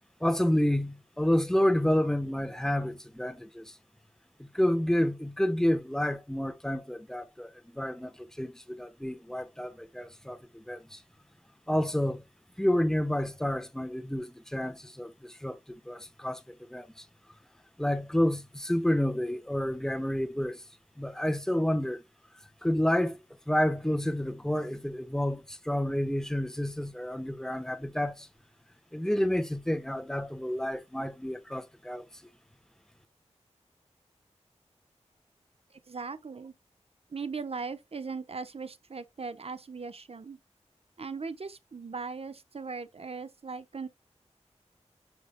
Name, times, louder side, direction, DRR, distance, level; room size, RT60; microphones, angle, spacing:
voice 1, 0.2-3.7 4.5-11.0 11.7-12.2 12.6-15.6 15.8-16.4 16.7-17.0 17.8-20.6 21.0-22.0 22.6-23.2 23.5-28.3 28.9-32.0, left 1 dB, 5° left, 1.1 m, -29 dB
voice 2, 35.7-36.5 37.1-40.4 41.0-43.9, right 4 dB, 55° right, 0.9 m, -39 dB
9.4 x 5.2 x 2.3 m
wide cardioid pair, 65°, 12 cm